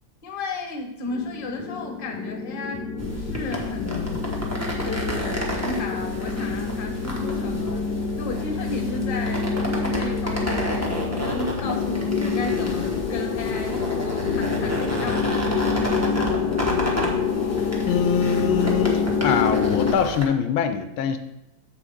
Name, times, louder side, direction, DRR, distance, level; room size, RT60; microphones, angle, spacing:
voice 1, 0.2-4.2 4.8-7.8 8.2-17.3, left 3 dB, 30° left, 4 dB, 1.1 m, -33 dB
sound 1, 1.1-19.9, left 5 dB, 65° left, 1.1 m, -27 dB
sound 2, 3.0-20.2, equal, 10° right, 1.1 m, -31 dB
voice 2, 17.9-21.2, left 7 dB, 85° left, 9 dB, 1.4 m, -23 dB
8.2 x 7.6 x 3.5 m, 0.88 s
omnidirectional pair, 2.2 m